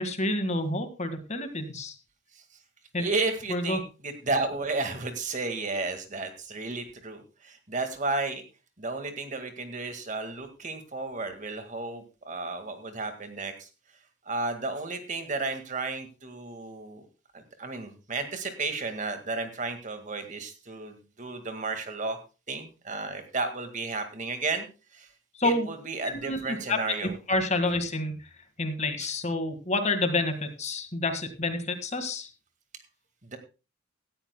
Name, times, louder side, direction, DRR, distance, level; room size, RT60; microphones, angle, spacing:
voice 1, 0.0-1.9 2.9-3.1 3.5-3.8 25.4-25.7 26.1-26.8 27.3-28.2 28.6-32.3, left 2 dB, 35° left, 8 dB, 1.8 m, -28 dB
voice 2, 3.0-8.4 8.8-13.7 14.3-17.1 17.3-22.2 22.5-24.7 24.9-25.1 25.4-27.2 29.0-29.1 33.2-33.4, right 3 dB, 35° right, 7 dB, 1.9 m, -33 dB
18.0 x 13.0 x 2.2 m, 0.31 s
head